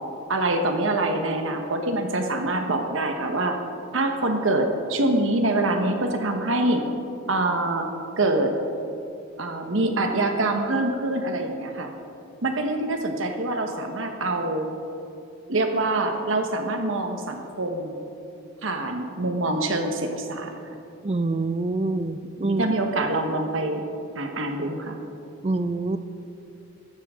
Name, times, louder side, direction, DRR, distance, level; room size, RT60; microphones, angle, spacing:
voice 1, 0.3-3.6 3.9-6.9 7.3-7.9 8.2-8.5 9.4-11.9 12.4-14.7 15.5-18.0 18.6-20.5 22.4-23.8 24.2-25.0, right 2 dB, 85° right, 4 dB, 1.2 m, -25 dB
voice 2, 21.0-22.6 25.4-26.0, right 2 dB, 35° right, 11 dB, 0.5 m, -25 dB
15.5 x 12.5 x 3.7 m, 2.7 s
head